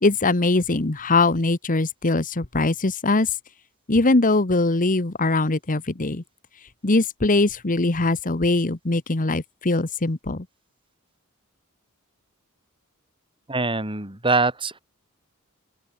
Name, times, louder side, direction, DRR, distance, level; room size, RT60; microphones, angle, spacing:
voice 1, 0.0-3.4 3.9-6.2 6.8-10.4, left 2 dB, 40° left, 1.3 m, -21 dB
voice 2, 13.5-14.8, right 3 dB, 25° right, 5.2 m, -23 dB
open air
head